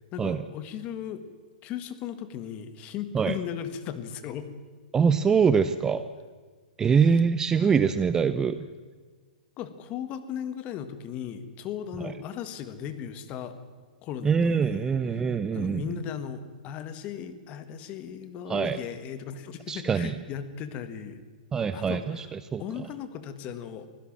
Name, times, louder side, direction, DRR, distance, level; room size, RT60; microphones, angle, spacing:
voice 1, 0.1-1.2 1.6-4.5 9.6-13.6 14.0-14.9 15.1-15.2 15.5-21.2 21.7-22.3 22.6-23.9, left 9 dB, 25° left, 11 dB, 1.6 m, -37 dB
voice 2, 4.9-6.0 6.8-8.7 14.2-15.8 18.5-18.8 19.7-20.1 21.5-22.6, right 6 dB, 10° right, 12 dB, 0.5 m, -24 dB
24.0 x 16.0 x 7.4 m, 1.5 s
hypercardioid pair, 155°, 5 cm